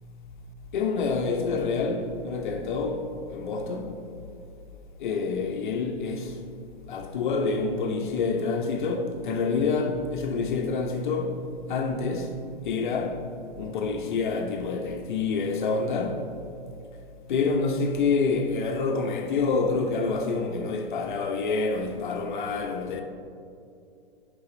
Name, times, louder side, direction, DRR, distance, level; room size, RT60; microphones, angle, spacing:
voice 1, 0.7-4.0 5.0-6.4 6.9-12.4 12.6-13.3 13.6-16.3 17.3-23.0, left 4 dB, 50° left, 0.8 m, -27 dB
9.6 x 5.5 x 3.9 m
figure-of-eight pair, 115°, 31 cm